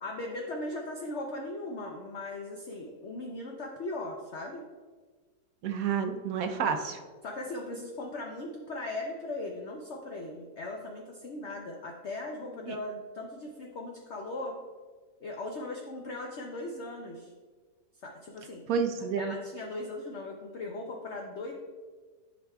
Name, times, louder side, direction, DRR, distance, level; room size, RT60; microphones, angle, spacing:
voice 1, 0.0-4.6 7.2-14.6 15.2-17.3 18.0-18.6 19.0-21.5, left 2 dB, 60° left, 0 dB, 0.7 m, -38 dB
voice 2, 5.6-7.0 18.7-19.3, right 6 dB, 65° right, 5 dB, 1.0 m, -29 dB
11.0 x 5.1 x 2.3 m, 1.4 s
omnidirectional pair, 1.8 m